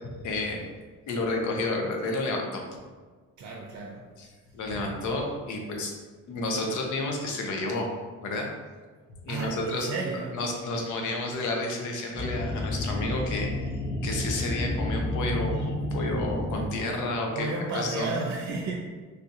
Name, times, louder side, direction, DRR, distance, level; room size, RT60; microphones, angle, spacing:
voice 1, 0.2-0.6 1.1-2.6 4.2-4.3 4.5-5.9 6.3-7.9 8.2-8.5 9.2-17.5 17.7-18.1, left 2 dB, 80° left, 1 dB, 0.7 m, -31 dB
voice 2, 3.4-4.0 9.3-10.3 17.3-18.8, right 3 dB, 65° right, -1 dB, 0.5 m, -32 dB
sound 1, 12.1-17.2, left 1 dB, 5° left, 0.8 m, -31 dB
3.4 x 2.7 x 2.5 m, 1.4 s
cardioid pair, 90°, 30 cm